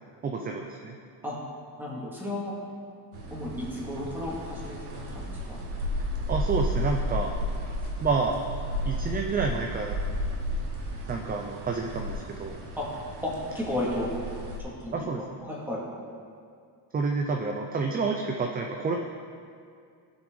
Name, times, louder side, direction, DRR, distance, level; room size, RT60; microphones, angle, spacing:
voice 1, 0.2-1.0 6.3-7.3 8.0-8.4 8.9-10.0 11.1-12.6 14.9-15.2 16.9-18.9, right 4 dB, 20° right, 2 dB, 0.4 m, -29 dB
voice 2, 1.8-2.5 3.3-5.6 12.8-12.9 13.2-14.1 14.6-15.1 15.4-15.8, left 1 dB, 5° right, -6 dB, 2.1 m, -33 dB
sound 1, 3.1-14.6, equal, 75° right, 1.6 m, -33 dB
16.0 x 6.1 x 3.9 m, 2.3 s
cardioid pair, 155°, 50 cm